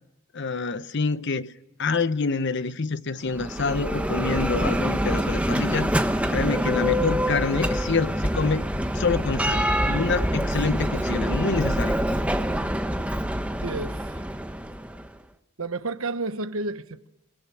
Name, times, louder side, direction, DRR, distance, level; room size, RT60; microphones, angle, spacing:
voice 1, 0.3-1.5 1.8-8.7 8.9-12.0, left 4 dB, 50° left, 0.8 m, -27 dB
Bell, 3.3-15.1, equal, 5° right, 0.9 m, -26 dB
voice 2, 13.6-14.2 15.6-17.1, right 3 dB, 70° right, 1.1 m, -31 dB
29.5 x 18.0 x 6.1 m
head